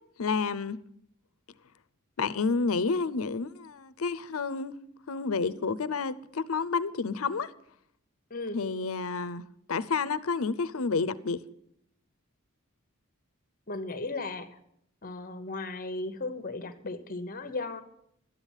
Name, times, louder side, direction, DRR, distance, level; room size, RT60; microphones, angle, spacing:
voice 1, 0.2-0.8 2.2-4.8 5.1-7.5 8.5-11.4, left 4 dB, 80° left, 0.6 m, -30 dB
voice 2, 8.3-8.6 13.7-14.5 15.0-17.8, left 2 dB, 40° left, 1.0 m, -36 dB
12.5 x 9.8 x 7.3 m
head